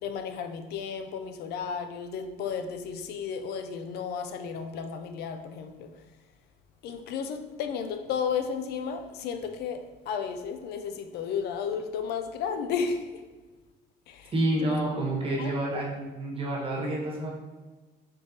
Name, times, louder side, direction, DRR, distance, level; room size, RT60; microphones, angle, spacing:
voice 1, 0.0-5.9 6.8-9.8 10.1-13.1 14.1-14.3 14.6-14.8 15.4-15.8, left 6 dB, 75° left, 7 dB, 0.4 m, -33 dB
voice 2, 14.3-17.3, right 1 dB, 35° right, -4 dB, 1.2 m, -29 dB
4.1 x 3.5 x 2.7 m, 1.3 s
cardioid pair, 110°, 17 cm